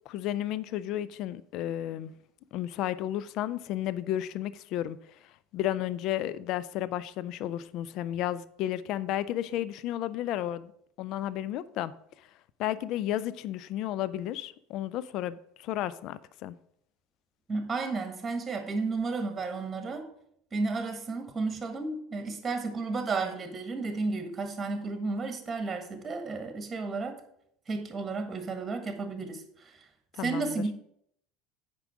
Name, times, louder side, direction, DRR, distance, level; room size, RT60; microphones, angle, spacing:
voice 1, 0.1-2.1 2.5-5.0 5.2-10.7 11.0-11.9 12.2-12.3 12.6-16.6 30.1-30.6, left 12 dB, 55° left, 0.4 m, -33 dB
voice 2, 17.5-20.1 20.5-27.2 27.7-29.7 30.2-30.7, right 3 dB, 20° right, 1.5 m, -32 dB
8.9 x 5.3 x 4.9 m
figure-of-eight pair, 70°, 0 cm